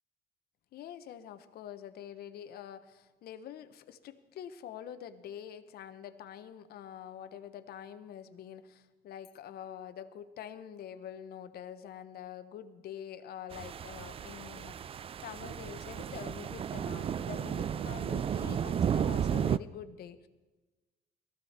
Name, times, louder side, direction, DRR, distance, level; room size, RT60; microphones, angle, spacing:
voice 1, 0.7-20.3, left 9 dB, 65° left, 11 dB, 1.1 m, -46 dB
sound 1, 13.5-19.6, right 8 dB, 35° right, 0.4 m, -33 dB
18.5 x 14.5 x 4.4 m, 1.2 s
cardioid pair, 110°, 17 cm